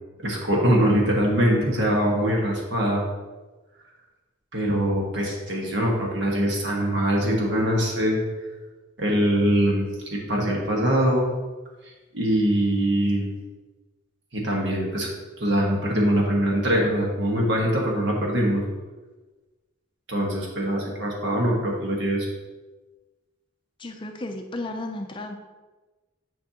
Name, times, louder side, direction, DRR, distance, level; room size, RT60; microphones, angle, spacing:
voice 1, 0.2-3.0 4.5-8.2 9.0-9.9 10.3-11.3 12.1-13.3 14.3-15.1 15.4-18.6 20.1-22.3, equal, 65° right, -2 dB, 1.4 m, -23 dB
voice 2, 23.8-25.4, left 2 dB, 25° left, 4 dB, 0.5 m, -33 dB
9.7 x 5.4 x 2.8 m, 1.2 s
head